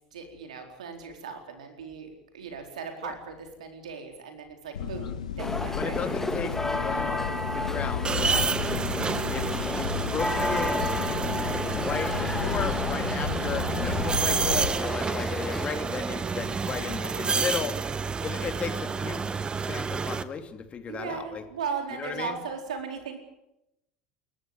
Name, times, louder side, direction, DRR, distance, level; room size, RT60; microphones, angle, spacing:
voice 1, 0.1-6.1 20.9-23.2, right 6 dB, 75° right, 5 dB, 4.3 m, -37 dB
sound 1, 4.7-14.7, left 7 dB, 80° left, 1.5 m, -33 dB
voice 2, 4.8-5.2 5.8-8.5 9.3-10.8 11.7-17.8 18.2-19.2 19.6-21.4 21.9-22.4, left 6 dB, 35° left, 7 dB, 3.0 m, -35 dB
sound 2, 5.4-15.7, left 1 dB, 10° left, 2.6 m, -32 dB
sound 3, 8.0-20.2, right 5 dB, 25° right, 1.3 m, -30 dB
28.5 x 14.0 x 9.0 m, 0.88 s
hypercardioid pair, 75°, 4 cm